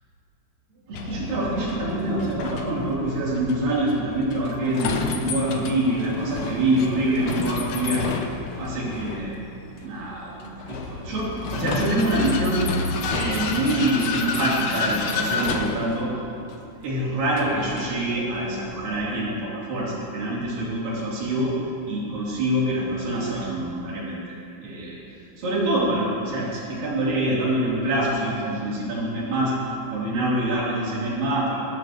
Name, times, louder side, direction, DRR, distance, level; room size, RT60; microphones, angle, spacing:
Vehicle, 0.9-19.0, left 4 dB, 90° left, 1.5 m, -31 dB
voice 1, 0.9-8.0 8.6-9.5 9.8-12.7 13.1-16.1 16.8-21.6 21.9-24.3 24.6-25.0 25.4-29.5 29.9-31.6, right 1 dB, 60° right, -7 dB, 5.0 m, -25 dB
24.0 x 12.5 x 3.1 m, 2.6 s
omnidirectional pair, 4.5 m